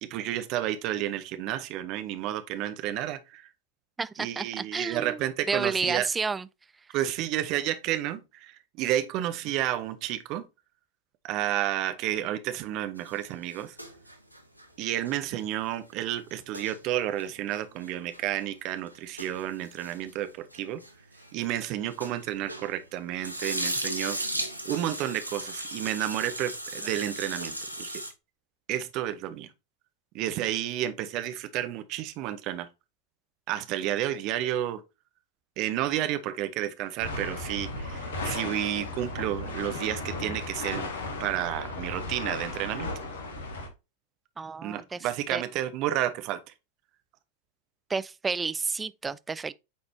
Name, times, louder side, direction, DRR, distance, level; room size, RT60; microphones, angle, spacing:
voice 1, 0.0-3.5 4.2-6.1 6.9-10.5 11.2-13.8 14.8-20.8 21.3-24.2 24.6-28.0 28.7-29.5 30.1-32.7 33.5-34.8 35.6-40.9 41.2-42.9 44.6-46.5, right 12 dB, 40° right, 0.9 m, -31 dB
voice 2, 4.0-6.5 6.8-6.9 44.4-45.4 47.9-49.5, right 4 dB, 15° right, 0.3 m, -31 dB
sound 1, 13.0-22.8 23.1-28.1, right 1 dB, 90° left, 1.0 m, -37 dB
sound 2, 37.0-43.7, left 2 dB, 60° left, 1.7 m, -35 dB
8.5 x 4.1 x 2.7 m
figure-of-eight pair, 90°, 0 cm